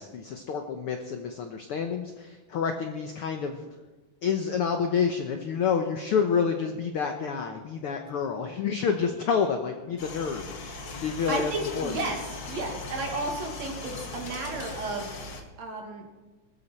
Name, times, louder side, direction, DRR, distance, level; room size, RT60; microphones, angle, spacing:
voice 1, 0.0-3.6 4.2-10.7 11.0-11.9, left 6 dB, 70° left, 6 dB, 1.3 m, -28 dB
sound 1, 10.0-15.4, left 4 dB, 45° left, 1.7 m, -39 dB
voice 2, 11.3-12.2 12.5-15.1 15.6-16.0, right 2 dB, 60° right, 1 dB, 3.2 m, -32 dB
20.0 x 13.5 x 4.3 m, 1.2 s
omnidirectional pair, 3.6 m